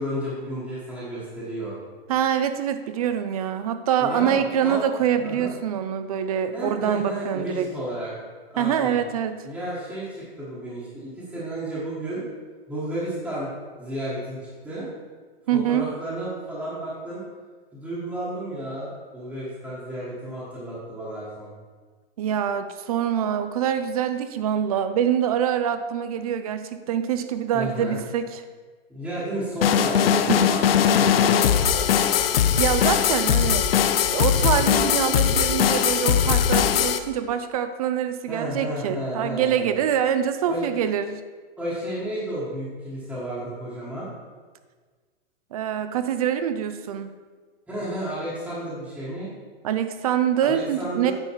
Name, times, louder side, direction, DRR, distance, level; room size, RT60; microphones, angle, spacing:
voice 1, 0.0-1.7 4.0-4.8 5.2-5.5 6.5-8.1 8.5-9.0 9.4-12.2 12.7-13.5 13.8-14.4 14.6-14.9 15.5-17.2 17.7-21.5 27.5-28.0 28.9-32.2 38.3-39.7 40.4-40.7 41.6-44.1 47.7-49.3 50.5-51.1, right 1 dB, 5° right, -11 dB, 1.4 m, -32 dB
voice 2, 2.1-7.7 8.6-9.4 15.5-15.9 22.2-28.4 30.3-30.5 32.6-33.7 34.1-41.2 45.5-47.1 49.6-51.1, right 9 dB, 40° right, 10 dB, 0.5 m, -25 dB
sound 1, 29.6-37.0, left 8 dB, 70° left, 0.7 m, -20 dB
8.9 x 5.5 x 4.6 m, 1.5 s
hypercardioid pair, 165°, 31 cm